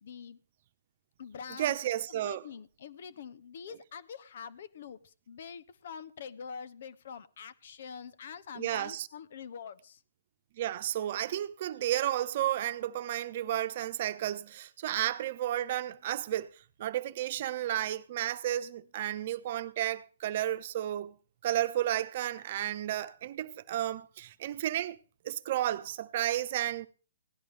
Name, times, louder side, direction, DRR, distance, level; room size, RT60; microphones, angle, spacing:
voice 1, 0.0-0.4 1.2-1.8 2.1-10.0, left 7 dB, 60° left, 1.1 m, -45 dB
voice 2, 1.6-2.4 8.6-9.1 10.6-16.5 16.8-21.1 21.4-25.0 25.2-26.9, right 12 dB, 50° right, 1.0 m, -32 dB
17.0 x 11.0 x 3.4 m
hypercardioid pair, 135°, 0 cm